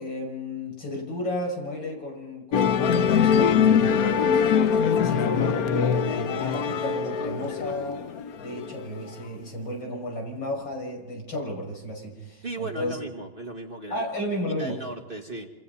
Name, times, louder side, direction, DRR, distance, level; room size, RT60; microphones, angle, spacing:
voice 1, 0.0-8.0 8.4-13.0 13.9-14.7, left 1 dB, 80° left, 0 dB, 6.8 m, -33 dB
Musical instrument, 2.5-9.1, left 7 dB, 60° left, 1.2 m, -23 dB
voice 2, 12.4-14.1 14.5-15.5, right 2 dB, 30° right, 3 dB, 2.0 m, -36 dB
28.5 x 28.0 x 4.1 m, 1.1 s
omnidirectional pair, 2.0 m